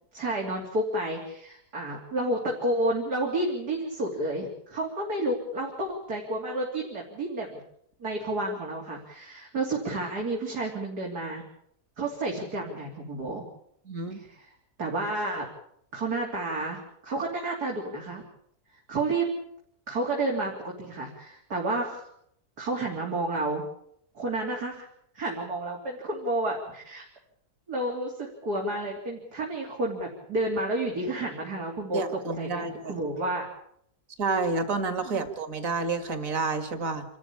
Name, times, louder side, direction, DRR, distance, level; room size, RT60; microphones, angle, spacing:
voice 1, 0.1-7.6 8.0-11.4 12.0-13.5 14.1-14.5 14.8-15.5 15.9-18.2 18.9-19.3 19.9-22.1 22.6-23.6 24.1-24.9 25.1-27.0 27.7-32.0 32.4-33.5 35.0-35.3, right 2 dB, 90° right, -2 dB, 4.1 m, -30 dB
voice 2, 13.9-14.2 31.9-32.9 34.2-37.1, right 3 dB, 60° right, 8 dB, 2.6 m, -29 dB
28.5 x 13.5 x 8.7 m, 0.72 s
omnidirectional pair, 1.6 m